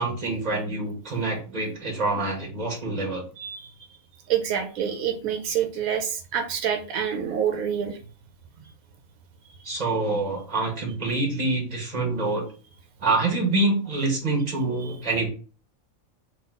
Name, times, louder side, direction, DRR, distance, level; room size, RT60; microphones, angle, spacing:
voice 1, 0.0-3.3 8.6-8.7 9.6-12.4 13.0-15.3, right 2 dB, 30° right, 0 dB, 1.5 m, -26 dB
voice 2, 4.3-8.0, right 8 dB, 85° right, 6 dB, 1.1 m, -27 dB
4.0 x 2.6 x 3.8 m, 0.37 s
omnidirectional pair, 1.5 m